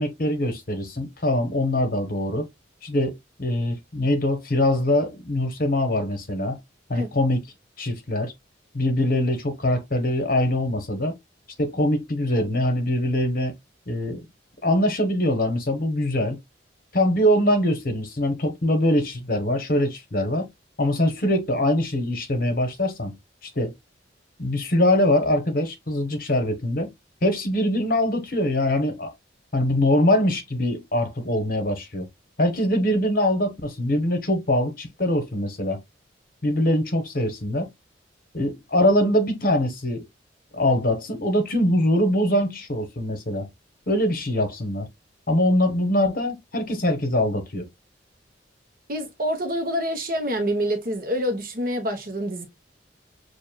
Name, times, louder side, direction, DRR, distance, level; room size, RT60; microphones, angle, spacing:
voice 1, 0.0-2.5 2.8-6.6 6.9-7.4 7.8-8.3 8.7-11.1 11.6-13.5 13.9-14.2 14.6-16.4 16.9-20.5 20.8-23.2 23.6-23.7 24.4-26.9 27.2-29.1 29.5-32.1 32.4-35.8 36.4-37.7 38.3-40.0 40.5-43.5 43.9-44.9 45.3-47.7, left 1 dB, 50° left, 1.1 m, -23 dB
voice 2, 48.9-52.5, equal, 50° right, 1.1 m, -26 dB
6.3 x 2.6 x 2.3 m
head